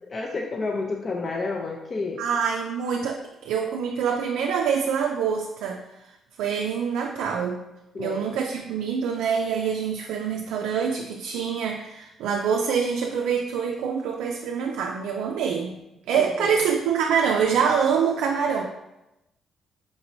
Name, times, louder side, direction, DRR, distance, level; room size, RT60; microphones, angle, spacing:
voice 1, 0.0-2.2 7.9-8.2 16.1-16.5, left 3 dB, 40° left, 0 dB, 0.4 m, -30 dB
voice 2, 2.2-5.8 6.4-7.6 8.0-15.7 16.1-18.7, right 6 dB, 90° right, 1 dB, 0.3 m, -25 dB
5.0 x 3.0 x 2.6 m, 0.93 s
cardioid pair, 90°, 0 cm